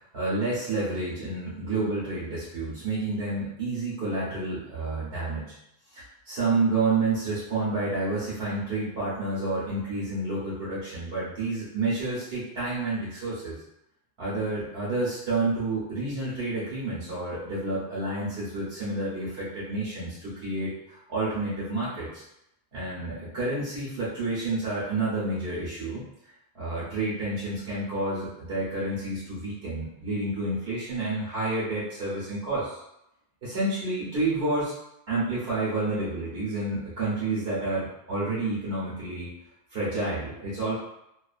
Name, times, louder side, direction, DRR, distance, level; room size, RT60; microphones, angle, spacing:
voice 1, 0.1-5.5 5.9-13.6 14.2-22.2 22.7-26.0 26.5-32.8 33.4-34.7 35.1-39.3 39.7-40.8, right 2 dB, 65° right, -9 dB, 1.0 m, -29 dB
2.4 x 2.3 x 2.3 m, 0.83 s
omnidirectional pair, 1.1 m